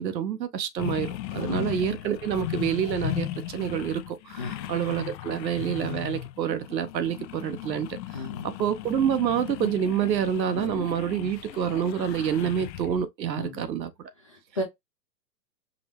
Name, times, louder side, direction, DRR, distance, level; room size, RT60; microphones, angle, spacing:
voice 1, 0.0-8.0 8.4-13.9, right 9 dB, 85° right, 0.9 m, -28 dB
sound 1, 0.8-13.0, left 13 dB, 80° left, 0.6 m, -36 dB
voice 2, 1.4-1.8 4.4-4.7 8.1-8.5 13.4-13.7 14.2-14.6, left 2 dB, 25° left, 0.3 m, -34 dB
5.3 x 2.1 x 2.9 m
hypercardioid pair, 145°, 50 cm